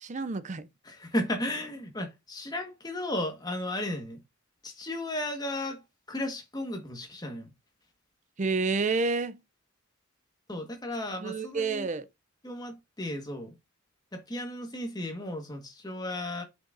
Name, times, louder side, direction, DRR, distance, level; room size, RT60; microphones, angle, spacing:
voice 1, 0.0-0.7 8.4-9.4 11.2-12.1, right 4 dB, 35° right, 0.5 m, -29 dB
voice 2, 0.8-4.2 4.6-5.8 6.1-7.5 10.5-11.9 12.4-13.5 14.1-16.4, left 1 dB, 20° left, 1.5 m, -34 dB
7.8 x 6.2 x 2.6 m
head